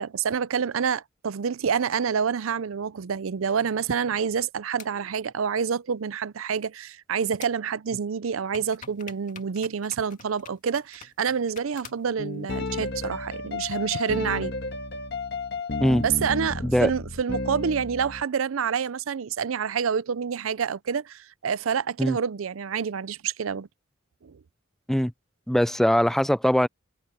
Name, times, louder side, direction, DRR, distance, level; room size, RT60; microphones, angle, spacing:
voice 1, 0.0-14.5 16.0-23.7 24.2-24.3, right 6 dB, 85° right, 0.5 m, -27 dB
sound 1, 4.8-4.9 7.4-7.5 8.5-12.1, left 6 dB, 40° left, 2.2 m, -46 dB
sound 2, 12.2-18.2, left 3 dB, 55° left, 1.6 m, -32 dB
voice 2, 25.5-26.7, equal, ahead, 0.5 m, -21 dB
head